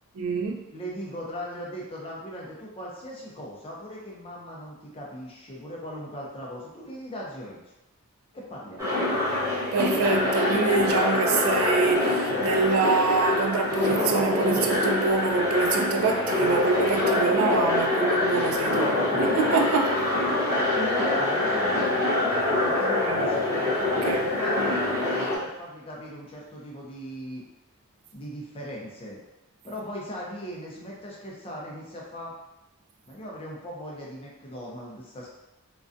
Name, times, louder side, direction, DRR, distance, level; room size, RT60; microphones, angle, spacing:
voice 1, 0.1-0.6 9.7-20.1 23.1-23.2 23.8-24.3, right 5 dB, 70° right, 3 dB, 0.3 m, -26 dB
voice 2, 0.7-7.6 8.3-8.9 20.2-23.4 24.0-27.4 28.1-29.2 29.6-32.3 33.1-35.3, equal, 25° left, -4 dB, 0.5 m, -38 dB
sound 1, 8.8-25.4, left 2 dB, 15° right, 0.7 m, -25 dB
2.4 x 2.2 x 2.5 m, 0.95 s
head